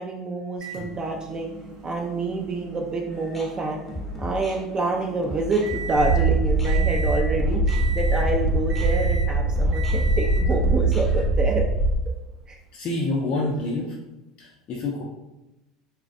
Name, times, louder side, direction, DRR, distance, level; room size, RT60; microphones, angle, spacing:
voice 1, 0.0-1.5 1.8-3.8 4.2-11.6 12.5-12.6, right 3 dB, 30° right, 0 dB, 0.3 m, -27 dB
Microwave oven, 0.6-6.2 6.6-7.3 7.7-8.3 8.7-9.3 9.7-10.5 11.5-11.6 13.6-13.7, right 3 dB, 55° right, 0.8 m, -38 dB
sound 1, 3.1-11.3, left 1 dB, 5° left, 0.6 m, -35 dB
sound 2, 6.0-12.0, right 2 dB, 90° right, 0.7 m, -22 dB
voice 2, 12.7-14.0 14.4-15.0, left 2 dB, 45° left, -3 dB, 0.4 m, -27 dB
2.3 x 2.1 x 2.5 m, 0.99 s
hypercardioid pair, 80°, 3 cm